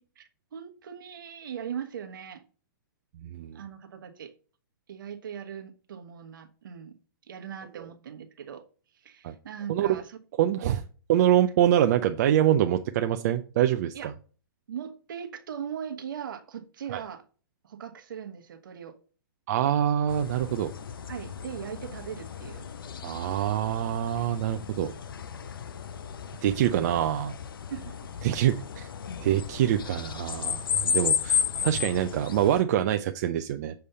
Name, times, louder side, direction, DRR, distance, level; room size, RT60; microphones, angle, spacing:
voice 1, 0.0-2.4 3.5-4.3 4.9-6.9 7.3-8.6 8.9-10.2 10.6-10.8 13.9-14.1 14.7-17.2 17.6-19.0 21.1-22.6 26.4-26.9 27.7-28.1 31.8-31.9, right 8 dB, 70° right, 6 dB, 1.2 m, -40 dB
voice 2, 3.2-3.6 9.2-9.3 9.7-10.0 10.4-10.8 11.1-14.1 16.9-17.0 19.5-20.7 23.0-24.9 26.4-27.3 28.2-28.9 29.2-33.7, right 11 dB, 50° right, 7 dB, 0.5 m, -25 dB
sound 1, 20.1-32.6, left 7 dB, 80° left, 0.6 m, -33 dB
6.9 x 3.4 x 5.5 m, 0.39 s
hypercardioid pair, 140°, 12 cm